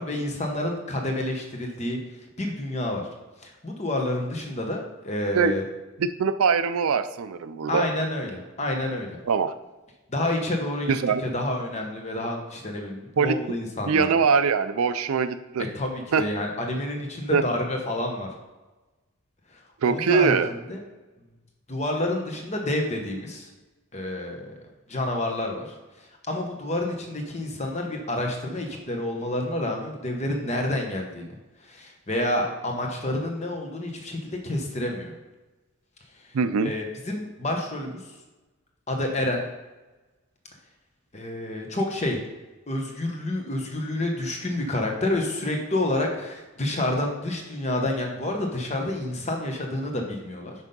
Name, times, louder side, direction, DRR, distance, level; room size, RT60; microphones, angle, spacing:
voice 1, 0.0-2.0 2.4-3.1 3.4-5.6 7.7-9.2 10.1-10.9 11.2-14.1 15.7-18.3 19.5-19.6 19.9-20.3 20.7-20.8 21.7-23.5 23.9-24.5 24.9-31.3 31.6-35.1 36.6-38.0 38.9-39.4 41.1-42.2 42.7-50.5, left 1 dB, 30° left, 2 dB, 1.0 m, -29 dB
voice 2, 6.0-7.9 9.3-9.5 10.9-11.2 13.2-13.4 13.8-15.6 16.1-16.3 17.3-17.4 19.8-20.5 36.3-36.7, right 5 dB, 80° right, 11 dB, 0.4 m, -22 dB
5.9 x 5.5 x 5.4 m, 1.1 s
head